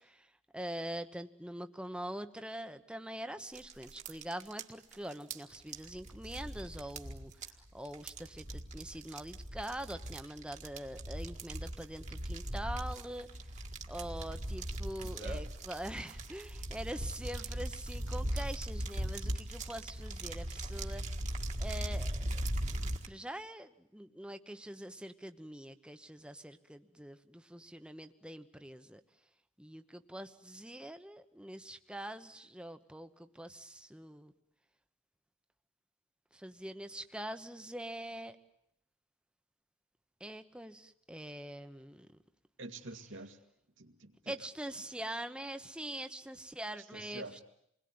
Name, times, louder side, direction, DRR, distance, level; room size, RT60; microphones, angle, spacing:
voice 1, 0.0-13.3 13.9-21.0 21.6-22.4 23.0-29.0 29.6-34.3 36.3-38.4 40.2-42.1 44.3-47.4, right 1 dB, 5° right, 8 dB, 1.1 m, -44 dB
sound 1, 3.5-23.1, right 1 dB, 35° right, 1.8 m, -39 dB
voice 2, 15.0-15.4 42.6-43.4 43.8-44.3 46.9-47.4, right 2 dB, 75° right, 6 dB, 2.2 m, -47 dB
28.5 x 21.0 x 9.6 m, 0.76 s
head